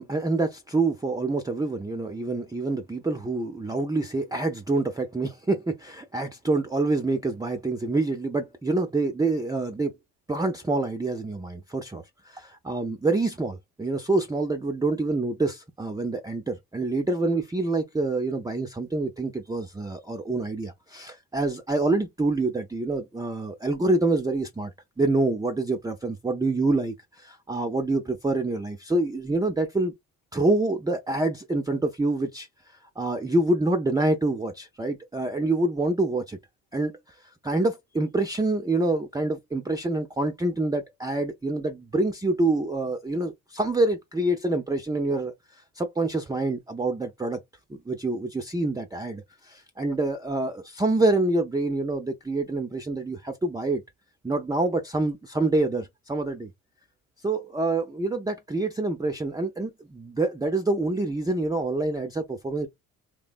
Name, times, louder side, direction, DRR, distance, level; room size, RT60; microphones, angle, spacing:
voice 1, 0.0-9.9 10.3-30.0 30.3-32.5 33.0-36.4 36.7-36.9 37.2-47.4 47.7-53.8 54.2-56.5 57.2-62.7, right 2 dB, 10° right, 0.5 m, -26 dB
3.2 x 2.1 x 2.4 m
hypercardioid pair, 55°, 41 cm